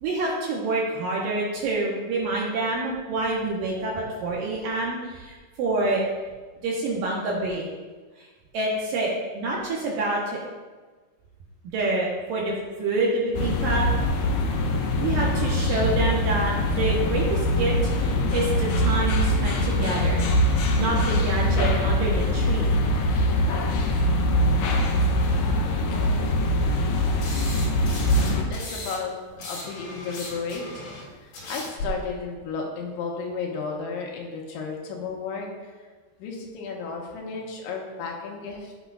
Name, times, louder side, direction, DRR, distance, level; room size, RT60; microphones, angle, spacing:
voice 1, 0.0-6.0 6.6-7.7 8.2-8.3 8.5-10.4 11.7-13.9 15.0-22.7, right 2 dB, 65° right, -4 dB, 2.4 m, -27 dB
sound 1, 13.3-28.4, left 1 dB, 70° left, 2.3 m, -23 dB
sound 2, 27.2-29.0 29.2-31.9, left 2 dB, 55° left, 4.0 m, -37 dB
voice 2, 28.1-30.9 31.2-35.7 36.2-38.7, left 4 dB, 90° left, 0 dB, 3.8 m, -33 dB
13.5 x 8.3 x 2.5 m, 1.4 s
omnidirectional pair, 5.2 m